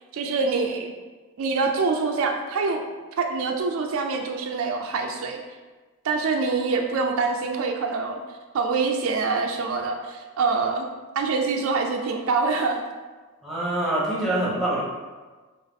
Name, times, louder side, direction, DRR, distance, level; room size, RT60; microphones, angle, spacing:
voice 1, 0.1-0.9 1.4-2.8 3.2-5.4 6.0-8.2 8.5-10.9 11.2-12.8, right 4 dB, 65° right, 3 dB, 0.3 m, -25 dB
voice 2, 13.4-14.8, right 1 dB, ahead, -7 dB, 0.9 m, -25 dB
3.7 x 3.0 x 3.5 m, 1.3 s
head